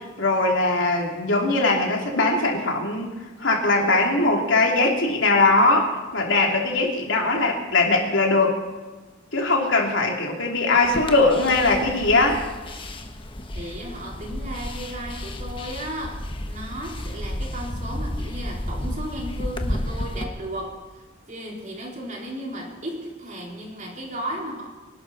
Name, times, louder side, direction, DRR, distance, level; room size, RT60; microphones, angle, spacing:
voice 1, 0.2-3.1 3.4-8.6 9.3-12.4, left 2 dB, 80° left, 0 dB, 3.2 m, -20 dB
sound 1, 10.8-20.2, left 1 dB, 25° left, 1.3 m, -32 dB
voice 2, 13.5-20.8 21.3-24.7, equal, 40° right, -2 dB, 4.0 m, -35 dB
25.0 x 12.0 x 4.3 m, 1.3 s
head